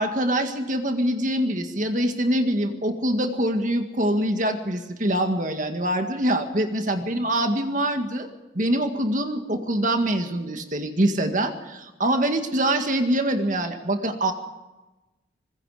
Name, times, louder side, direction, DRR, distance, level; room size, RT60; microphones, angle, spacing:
voice 1, 0.0-8.3 8.6-14.3, right 1 dB, 45° right, 5 dB, 2.0 m, -24 dB
25.0 x 21.5 x 5.1 m, 1.1 s
head